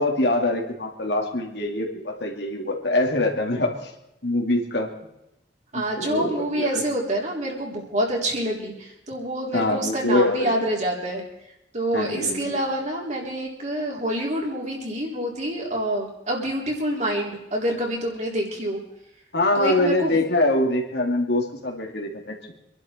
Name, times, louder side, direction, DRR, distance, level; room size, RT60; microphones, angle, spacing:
voice 1, 0.0-3.9 4.2-4.9 5.7-6.8 9.5-10.5 11.9-12.6 19.3-22.5, left 2 dB, 70° left, 1 dB, 2.9 m, -24 dB
voice 2, 5.7-11.2 11.7-18.8 19.6-20.3, right 1 dB, 40° right, -1 dB, 3.9 m, -27 dB
26.0 x 11.5 x 4.6 m, 0.86 s
head